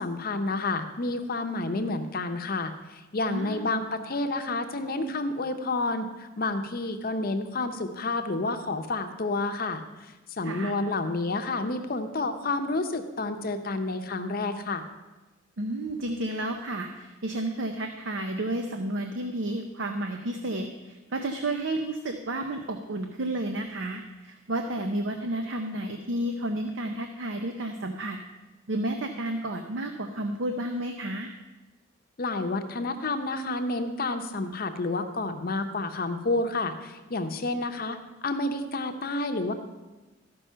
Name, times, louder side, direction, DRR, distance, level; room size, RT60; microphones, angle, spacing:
voice 1, 0.0-14.8 32.2-39.5, left 2 dB, 45° left, 6 dB, 0.7 m, -30 dB
voice 2, 3.3-3.7 10.4-10.7 15.6-28.2 28.7-31.3, right 1 dB, 65° right, 5 dB, 0.7 m, -31 dB
13.5 x 5.4 x 5.5 m, 1.1 s
head